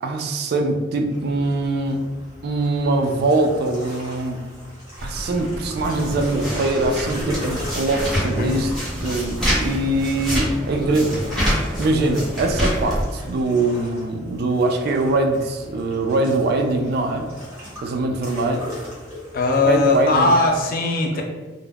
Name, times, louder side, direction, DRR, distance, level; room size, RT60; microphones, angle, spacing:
voice 1, 0.0-2.0 2.4-4.4 5.0-8.7 9.0-11.2 11.8-17.3 17.8-18.7 19.7-20.3, right 2 dB, 55° right, 4 dB, 0.3 m, -22 dB
sound 1, 1.1-20.6, left 1 dB, 15° right, 1.2 m, -39 dB
sound 2, 5.0-13.1, equal, ahead, 0.8 m, -26 dB
voice 2, 8.2-8.6 19.3-21.2, left 3 dB, 50° left, 1 dB, 0.3 m, -19 dB
2.3 x 2.0 x 3.3 m, 1.3 s
head